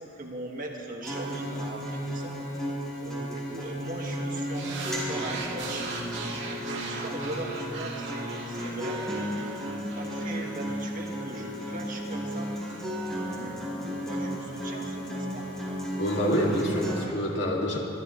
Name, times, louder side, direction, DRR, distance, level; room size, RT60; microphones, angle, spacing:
voice 1, 0.0-2.7 3.0-6.3 6.7-9.6 10.0-12.5 13.3-15.5, right 1 dB, 45° right, -1 dB, 1.8 m, -39 dB
Acoustic guitar, 1.0-17.0, equal, ahead, 4.0 m, -34 dB
sound 1, 4.5-11.1, right 4 dB, 60° right, 2.5 m, -39 dB
voice 2, 16.0-17.8, equal, 60° left, -2 dB, 2.5 m, -26 dB
25.0 x 14.0 x 3.2 m, 2.8 s
head